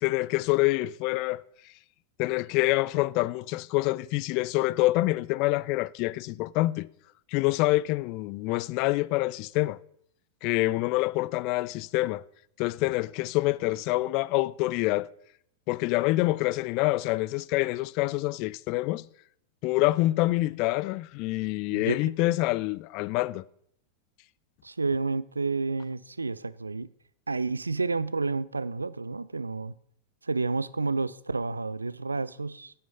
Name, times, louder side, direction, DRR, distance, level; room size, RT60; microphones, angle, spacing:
voice 1, 0.0-1.4 2.2-6.9 7.3-9.8 10.4-12.2 12.6-15.1 15.7-19.1 19.6-23.4, left 19 dB, 45° left, 0.4 m, -26 dB
voice 2, 21.7-22.2 24.6-26.9 27.3-29.7 30.2-32.7, right 3 dB, 80° right, 0.4 m, -30 dB
11.5 x 9.3 x 5.5 m
figure-of-eight pair, 90°, 0 cm